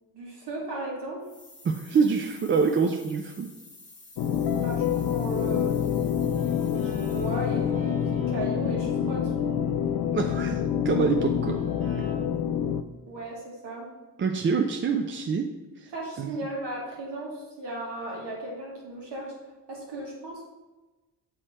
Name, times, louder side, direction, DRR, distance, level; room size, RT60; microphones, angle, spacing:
voice 1, 0.1-1.2 4.6-6.1 6.8-9.3 13.1-13.9 15.9-19.3 19.7-20.5, right 1 dB, 75° right, -2 dB, 1.9 m, -36 dB
sound 1, 1.2-7.6, left 2 dB, 20° left, 1.3 m, -51 dB
voice 2, 1.6-3.5 10.1-11.6 12.0-12.1 14.2-15.5 15.8-15.9 16.2-16.4, right 5 dB, 30° right, 4 dB, 0.4 m, -26 dB
sound 2, 4.2-12.8, left 8 dB, 60° left, 0.5 m, -27 dB
Guitar, 6.2-12.2, right 2 dB, 55° right, 1.1 m, -45 dB
7.4 x 3.2 x 4.3 m, 1.1 s
cardioid pair, 85°, 42 cm